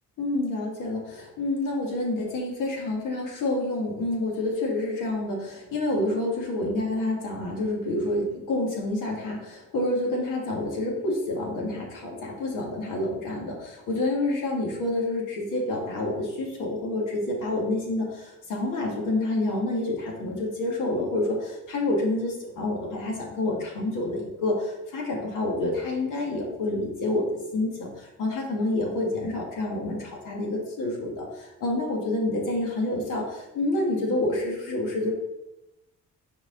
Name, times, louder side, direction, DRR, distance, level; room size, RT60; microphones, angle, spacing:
voice 1, 0.2-27.3 27.5-35.1, left 2 dB, 80° left, -1 dB, 1.9 m, -28 dB
6.1 x 4.9 x 3.9 m, 0.97 s
cardioid pair, 110°, 32 cm